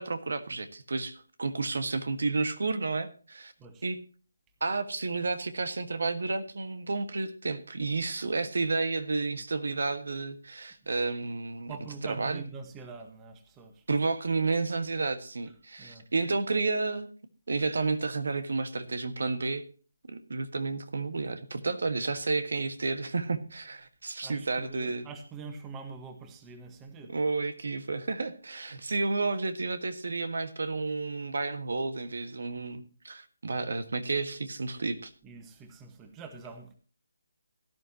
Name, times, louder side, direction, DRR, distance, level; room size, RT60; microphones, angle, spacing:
voice 1, 0.0-3.5 3.8-4.0 4.6-11.7 12.1-12.4 13.9-17.1 17.5-19.6 20.1-25.1 27.1-35.1, right 3 dB, 70° right, 11 dB, 1.6 m, -31 dB
voice 2, 11.7-13.8 15.8-16.1 24.2-27.1 35.2-36.7, right 4 dB, 15° right, 7 dB, 1.5 m, -44 dB
17.5 x 11.0 x 2.9 m, 0.39 s
figure-of-eight pair, 160°, 0 cm